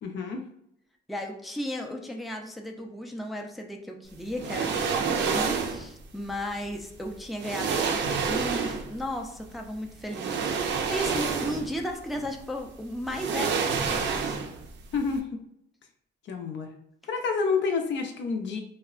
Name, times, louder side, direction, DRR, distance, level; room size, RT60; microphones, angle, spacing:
voice 1, 0.0-0.4 14.9-15.4 16.3-16.7 17.1-18.6, left 5 dB, 65° left, 4 dB, 0.5 m, -28 dB
voice 2, 1.1-14.4, equal, ahead, 2 dB, 0.4 m, -35 dB
sound 1, 4.4-5.9 6.9-7.0 7.4-9.0 10.1-11.8 12.2-12.3 13.1-14.7 15.0-15.1, right 5 dB, 65° right, 0.5 m, -28 dB
3.4 x 2.0 x 2.4 m, 0.75 s
cardioid pair, 90°, 20 cm